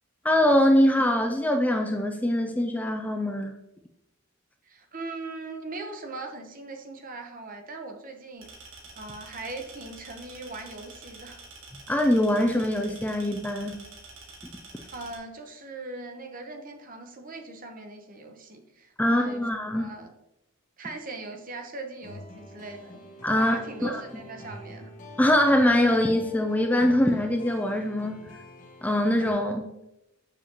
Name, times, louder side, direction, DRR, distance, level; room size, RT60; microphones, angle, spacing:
voice 1, 0.2-3.6 11.9-13.8 19.0-19.9 23.2-24.0 25.2-28.3 28.8-29.8, left 1 dB, 10° left, 4 dB, 0.4 m, -23 dB
voice 2, 4.6-8.5 9.0-11.4 14.9-19.4 19.7-20.1 20.8-23.0 23.4-24.9, right 2 dB, 40° right, 4 dB, 0.9 m, -40 dB
sound 1, 8.4-15.2, right 3 dB, 65° right, 1.9 m, -47 dB
sound 2, 22.0-29.3, left 1 dB, 40° left, 1.1 m, -46 dB
7.0 x 6.9 x 2.9 m, 0.88 s
head